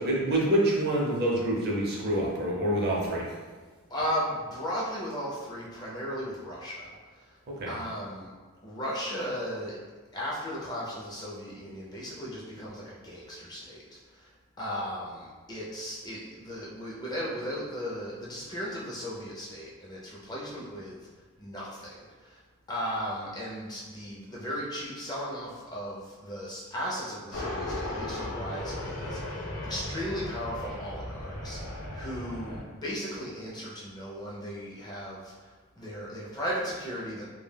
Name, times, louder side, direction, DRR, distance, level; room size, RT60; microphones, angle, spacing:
voice 1, 0.0-3.3 7.5-7.7, right 1 dB, 45° right, -3 dB, 0.5 m, -27 dB
voice 2, 3.9-7.3 7.7-8.3 8.6-9.8 10.1-22.4 22.7-37.3, equal, 20° left, -5 dB, 0.4 m, -36 dB
sound 1, 27.3-32.6, left 1 dB, 65° left, 0.7 m, -36 dB
2.2 x 2.1 x 3.2 m, 1.4 s
head